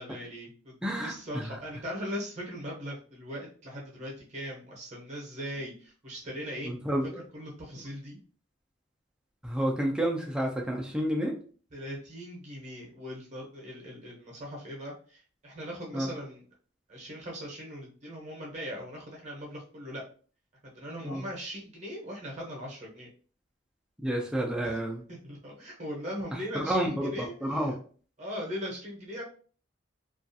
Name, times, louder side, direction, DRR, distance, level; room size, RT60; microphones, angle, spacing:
voice 1, 0.0-7.0 7.3-8.2 11.7-16.4 16.9-20.0 20.6-23.1 24.6-24.8 25.2-27.7 28.2-29.2, equal, 35° right, -2 dB, 0.7 m, -40 dB
voice 2, 0.8-1.6 6.6-7.2 9.4-11.3 15.9-16.1 21.0-21.2 24.0-25.0 26.3-27.7, right 1 dB, 5° right, 0 dB, 0.3 m, -30 dB
2.4 x 2.3 x 2.6 m, 0.42 s
head